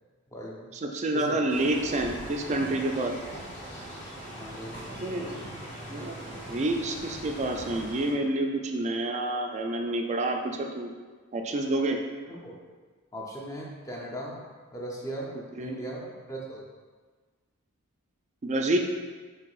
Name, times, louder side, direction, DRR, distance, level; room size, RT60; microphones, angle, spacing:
voice 1, 0.3-0.7 1.1-1.6 4.3-5.5 12.3-12.5 13.1-14.4 14.7-15.3 15.6-16.6, right 1 dB, 15° left, -3 dB, 0.6 m, -38 dB
voice 2, 0.8-3.1 5.0-5.4 5.9-10.9 11.3-12.0 15.6-15.8 18.4-18.8, right 2 dB, 30° right, 3 dB, 0.3 m, -28 dB
sound 1, 1.5-8.1, right 1 dB, 30° left, 1.2 m, -41 dB
4.6 x 3.4 x 2.4 m, 1.4 s
head